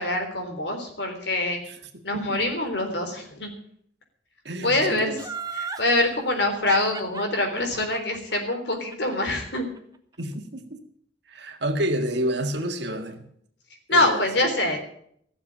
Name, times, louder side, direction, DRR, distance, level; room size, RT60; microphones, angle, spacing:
voice 1, 0.0-1.6 2.0-3.5 4.6-5.2 5.5-9.7 13.9-14.8, left 2 dB, 60° left, 4 dB, 3.6 m, -25 dB
voice 2, 4.4-5.1 10.2-10.8 11.3-13.2 13.9-14.3, right 1 dB, 60° right, 5 dB, 1.9 m, -29 dB
Laughter, 5.2-5.9 6.7-9.8 10.1-10.2, right 4 dB, 20° right, 1.1 m, -35 dB
16.0 x 7.3 x 8.6 m, 0.66 s
head